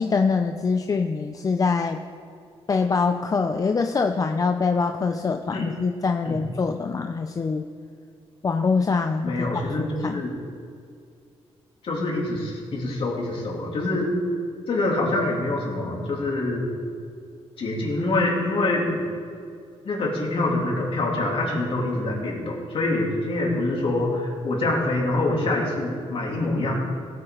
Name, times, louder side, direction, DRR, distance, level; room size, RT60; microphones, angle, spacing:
voice 1, 0.0-2.0 2.7-7.6 8.4-10.2, left 4 dB, 30° left, 6 dB, 0.5 m, -24 dB
voice 2, 9.2-10.3 11.8-14.1 14.7-16.7 17.6-19.0 19.8-26.8, left 2 dB, 55° left, -3 dB, 3.1 m, -25 dB
17.0 x 8.2 x 3.9 m, 2.3 s
cardioid pair, 110°, 11 cm